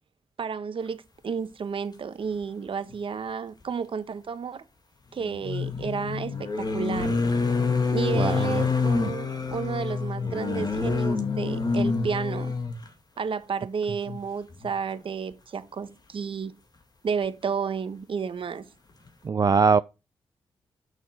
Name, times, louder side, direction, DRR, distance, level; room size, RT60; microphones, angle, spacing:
voice 1, 0.4-4.6 5.1-7.2 7.9-12.5 13.2-16.5 17.0-18.7, right 6 dB, 60° right, 1.0 m, -32 dB
sound 1, 2.9-3.0 5.2-12.9 14.0-14.2 14.5-14.7, left 4 dB, 40° left, 2.1 m, -27 dB
voice 2, 8.1-8.6 19.3-19.8, right 5 dB, 35° right, 0.4 m, -21 dB
6.5 x 6.3 x 5.0 m
supercardioid pair, 40°, 10 cm